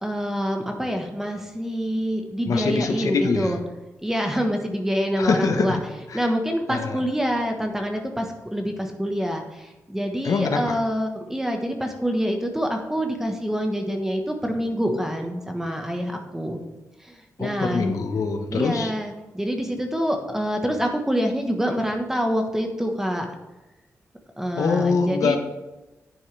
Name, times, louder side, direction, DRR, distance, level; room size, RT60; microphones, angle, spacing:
voice 1, 0.0-3.6 4.0-5.8 6.1-16.6 17.1-18.0 18.5-23.3 24.4-25.4, equal, 5° right, 3 dB, 1.3 m, -26 dB
voice 2, 2.5-3.6 5.2-6.2 6.7-7.0 10.2-10.7 17.4-18.9 24.5-25.4, left 4 dB, 75° left, 5 dB, 1.1 m, -24 dB
10.5 x 9.2 x 3.4 m, 1.1 s
wide cardioid pair, 145°, 6 cm